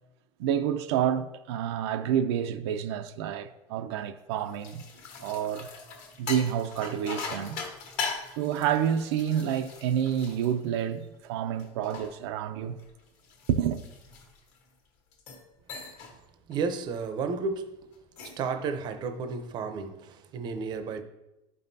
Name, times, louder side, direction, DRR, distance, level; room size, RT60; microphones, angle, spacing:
voice 1, 0.4-4.8 5.2-5.7 6.2-7.6 8.4-12.8 13.5-13.8, right 9 dB, 85° right, 0.5 m, -28 dB
sound 1, 4.3-11.1 11.6-14.6 15.1-15.4 15.7-16.2 16.5-16.8 17.9-18.5, left 5 dB, 55° left, 1.3 m, -40 dB
voice 2, 16.5-17.7 18.2-21.0, right 4 dB, 30° right, 0.6 m, -32 dB
11.0 x 5.4 x 2.7 m
cardioid pair, 160°, 14 cm